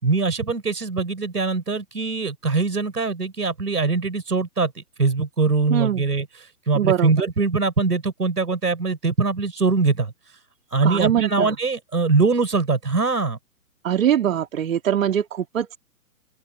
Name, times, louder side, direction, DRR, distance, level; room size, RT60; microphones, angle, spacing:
voice 1, 0.0-6.3 6.7-10.1 10.7-13.4, right 4 dB, 85° right, 5.9 m, -22 dB
voice 2, 5.7-6.0 6.7-7.1 10.8-11.5 13.8-15.8, right 10 dB, 60° right, 2.7 m, -22 dB
open air
hypercardioid pair, 135°, 46 cm